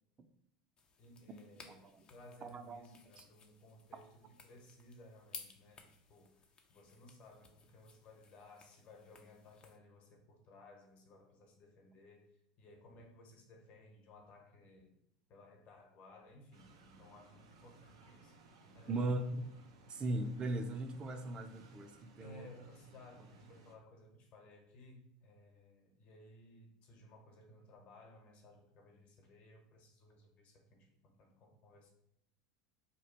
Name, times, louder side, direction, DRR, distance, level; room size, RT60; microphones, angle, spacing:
sound 1, 0.8-9.8, left 5 dB, 30° left, 0.5 m, -58 dB
voice 1, 1.0-14.9 15.3-19.2 22.2-31.9, left 1 dB, 50° left, 2 dB, 1.0 m, -59 dB
voice 2, 1.6-2.0 2.4-3.2 18.9-19.5 19.9-22.5, right 1 dB, 30° right, 7 dB, 0.5 m, -39 dB
sound 2, 16.5-23.8, right 3 dB, 85° right, 0.5 m, -62 dB
3.0 x 2.3 x 4.3 m, 0.79 s
hypercardioid pair, 95°, 3 cm